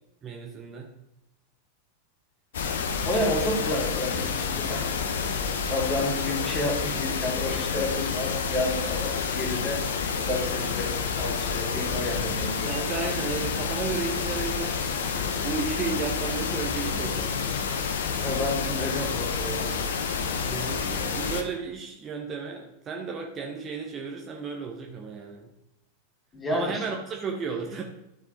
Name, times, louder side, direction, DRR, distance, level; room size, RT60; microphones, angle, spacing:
voice 1, 0.2-0.9 12.7-14.8 15.4-17.3 20.4-25.5 26.5-27.8, right 5 dB, 25° right, 1 dB, 0.9 m, -33 dB
sound 1, 2.5-21.4, left 5 dB, 60° left, 0.8 m, -29 dB
voice 2, 3.0-4.8 5.7-9.8 10.1-12.7 18.2-19.9 26.3-26.8, left 1 dB, 15° left, -2 dB, 2.6 m, -30 dB
12.0 x 4.6 x 3.9 m, 0.86 s
figure-of-eight pair, 90°, 0 cm